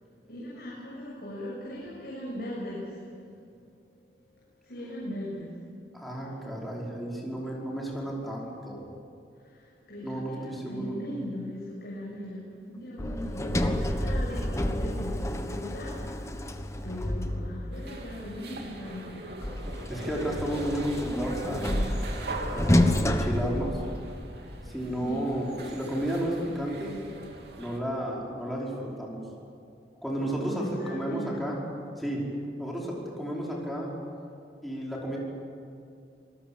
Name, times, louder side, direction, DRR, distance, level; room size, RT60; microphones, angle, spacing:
voice 1, 0.3-3.2 4.6-5.5 7.6-7.7 9.4-19.2 25.0-25.3 30.2-31.4, left 1 dB, 60° left, -6 dB, 7.1 m, -39 dB
voice 2, 5.9-8.8 10.0-11.0 19.9-21.7 22.4-23.8 24.7-26.9 27.6-29.2 30.0-31.6 32.0-32.2 32.6-33.9 34.6-35.2, right 1 dB, ahead, -4 dB, 5.3 m, -32 dB
Sliding door, 13.0-17.8 19.4-24.4, left 1 dB, 15° left, 1.2 m, -29 dB
sound 1, 17.7-27.8, right 2 dB, 65° right, 3.2 m, -41 dB
26.5 x 19.5 x 8.8 m, 2.5 s
head